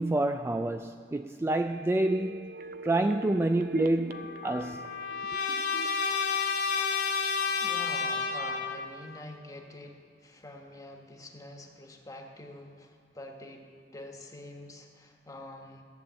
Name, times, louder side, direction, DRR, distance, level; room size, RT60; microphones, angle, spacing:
voice 1, 0.0-2.5 2.8-4.9, right 2 dB, 15° right, 0.3 m, -28 dB
sound 1, 1.5-7.2 7.6-7.7, right 3 dB, 55° right, 0.6 m, -43 dB
Trumpet, 4.1-9.0, left 5 dB, 85° left, 1.8 m, -31 dB
voice 2, 7.4-15.8, left 1 dB, 20° left, 1.4 m, -46 dB
14.5 x 8.7 x 7.4 m
head